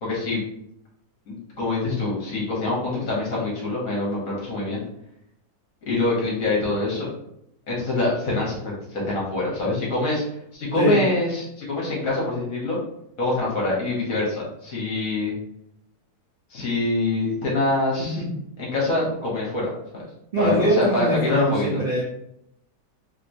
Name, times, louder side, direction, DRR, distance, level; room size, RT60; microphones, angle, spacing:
voice 1, 0.0-0.4 1.3-4.8 5.9-7.1 7.7-10.2 10.5-12.8 13.2-15.3 16.5-18.2 18.6-19.7 20.4-21.8, left 2 dB, 55° left, -4 dB, 1.3 m, -25 dB
voice 2, 20.3-22.0, right 1 dB, 50° right, -8 dB, 0.7 m, -22 dB
3.3 x 2.9 x 2.5 m, 0.76 s
omnidirectional pair, 1.9 m